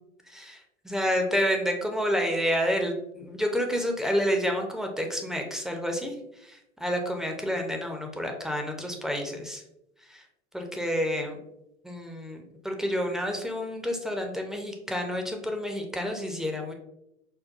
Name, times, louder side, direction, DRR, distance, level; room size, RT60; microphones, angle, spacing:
voice 1, 0.3-0.6 0.8-6.1 6.4-9.6 10.1-10.2 10.5-11.4 11.8-16.7, equal, ahead, 2 dB, 0.3 m, -29 dB
5.2 x 2.2 x 2.4 m, 0.84 s
hypercardioid pair, 85°, 35 cm